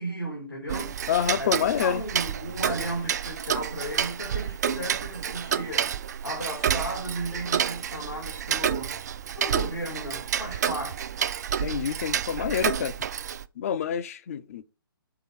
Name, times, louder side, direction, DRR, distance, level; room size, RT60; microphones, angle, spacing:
voice 1, 0.0-1.0 1.4-5.9 6.2-9.0 9.3-11.1, right 1 dB, 90° left, 2.2 m, -35 dB
Tick-tock, 0.7-13.5, right 8 dB, 50° right, 0.3 m, -29 dB
voice 2, 1.1-2.0 11.6-12.9 13.6-14.6, left 9 dB, 40° left, 0.5 m, -27 dB
5.8 x 3.7 x 5.7 m
figure-of-eight pair, 130°, 12 cm